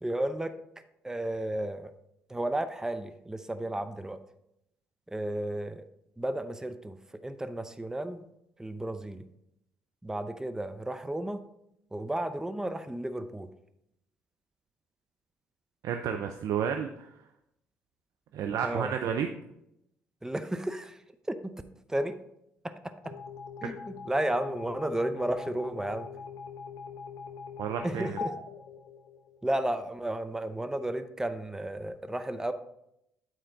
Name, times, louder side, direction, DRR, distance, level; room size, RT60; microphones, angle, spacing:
voice 1, 0.0-0.5 1.0-1.9 2.3-4.2 5.1-5.8 6.2-7.0 7.2-8.2 8.6-9.2 10.0-11.4 11.9-13.5 18.6-18.9 20.2-21.0 21.3-21.5 21.9-22.2 23.6-26.1 27.8-28.3 29.4-32.5, right 1 dB, 10° right, 10 dB, 0.6 m, -33 dB
voice 2, 15.8-17.1 18.3-19.3 27.6-28.2, right 8 dB, 65° right, 6 dB, 0.5 m, -31 dB
sound 1, 23.0-29.5, left 5 dB, 75° left, 0.7 m, -42 dB
8.8 x 4.4 x 3.9 m, 0.81 s
hypercardioid pair, 50°, 6 cm